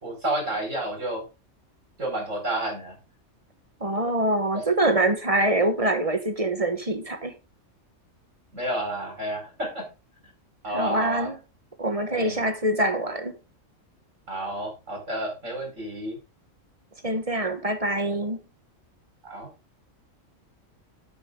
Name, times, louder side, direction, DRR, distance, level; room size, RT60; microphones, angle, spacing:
voice 1, 0.0-1.2 2.0-3.0 4.5-4.7 8.5-9.9 10.6-11.3 12.1-12.5 14.3-16.2 19.2-19.5, right 1 dB, 70° right, 5.1 m, -31 dB
voice 2, 3.8-7.4 10.7-11.4 11.8-13.4 17.0-18.4, right 1 dB, 30° right, 1.3 m, -24 dB
8.7 x 8.3 x 3.7 m
omnidirectional pair, 1.3 m